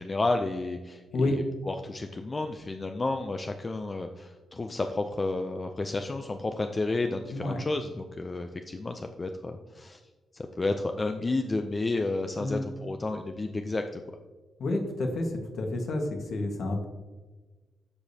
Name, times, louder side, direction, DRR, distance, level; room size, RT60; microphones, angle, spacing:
voice 1, 0.0-10.0 10.3-14.0, left 2 dB, 20° left, 6 dB, 0.4 m, -31 dB
voice 2, 7.3-7.6 12.4-12.6 14.6-16.9, left 2 dB, 55° left, 3 dB, 1.4 m, -29 dB
13.5 x 5.0 x 2.8 m, 1.2 s
wide cardioid pair, 160°, 0 cm